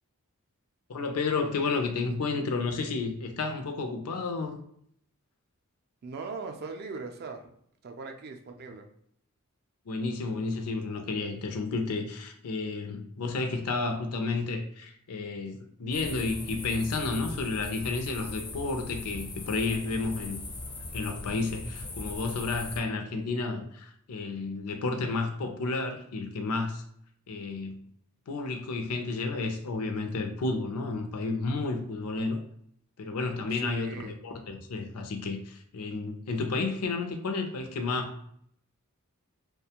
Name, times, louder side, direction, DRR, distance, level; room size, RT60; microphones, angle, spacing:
voice 1, 0.9-4.6 9.9-20.4 20.9-26.8 27.3-27.8 28.3-32.4 33.0-38.3, left 3 dB, 80° left, 5 dB, 0.5 m, -31 dB
voice 2, 6.0-7.5 7.8-8.9 19.7-20.4 33.5-34.1, right 4 dB, 45° right, 3 dB, 0.4 m, -40 dB
sound 1, 15.9-22.8, left 2 dB, 25° left, 0.4 m, -39 dB
2.4 x 2.2 x 2.8 m, 0.67 s
head